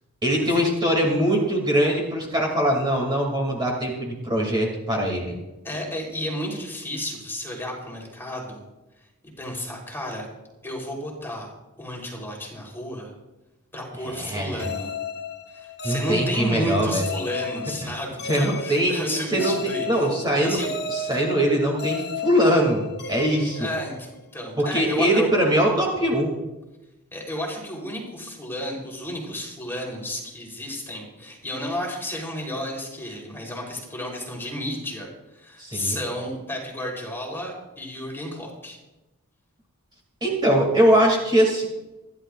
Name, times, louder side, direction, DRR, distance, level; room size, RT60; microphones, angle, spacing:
voice 1, 0.2-5.4 14.0-14.7 15.8-17.0 17.8-17.9 18.2-19.5 19.8-20.6 20.9-23.7 24.6-26.4 35.6-36.0 40.2-41.6, equal, 20° right, -1 dB, 2.5 m, -22 dB
voice 2, 5.6-8.6 9.4-10.3 10.6-11.5 11.8-13.1 13.7-14.9 15.5-20.1 20.4-20.7 21.1-21.2 23.6-25.3 27.1-38.8, left 1 dB, 10° left, -1 dB, 3.5 m, -32 dB
sound 1, 14.6-24.4, left 3 dB, 50° left, 1.1 m, -34 dB
27.5 x 11.5 x 2.5 m, 1.0 s
head